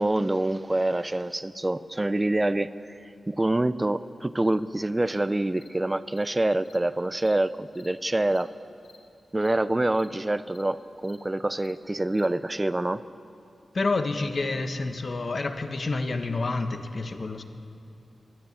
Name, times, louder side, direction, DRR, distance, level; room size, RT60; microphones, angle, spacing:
voice 1, 0.0-2.9 3.3-8.5 9.3-13.0, right 1 dB, 15° right, 13 dB, 0.5 m, -26 dB
Cricket, 4.4-4.6 5.1-5.2 5.6-5.7 6.1-6.2 6.6-6.8 7.2-7.3 7.7-7.9 8.3-8.4 8.8-9.0 9.4-9.5 9.9-10.1 10.5-10.6 11.0-11.2 11.6-11.7 12.1-12.3, left 5 dB, 70° left, 2.6 m, -55 dB
voice 2, 13.7-17.4, left 3 dB, 45° left, 7 dB, 1.5 m, -28 dB
24.0 x 14.5 x 8.4 m, 2.8 s
wide cardioid pair, 115°, 0 cm